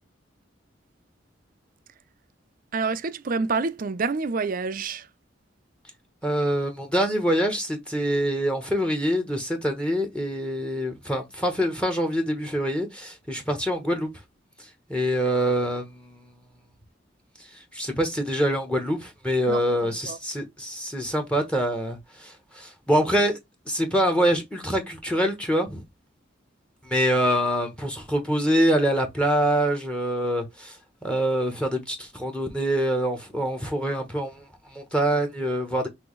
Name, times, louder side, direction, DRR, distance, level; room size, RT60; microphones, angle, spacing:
voice 1, 2.7-5.1 19.5-19.6 20.1-20.2, right 4 dB, 45° right, 0.5 m, -27 dB
voice 2, 6.2-14.1 14.6-16.2 17.5-23.4 23.7-25.8 26.8-35.9, equal, 5° left, 1.0 m, -25 dB
6.1 x 2.7 x 3.1 m
head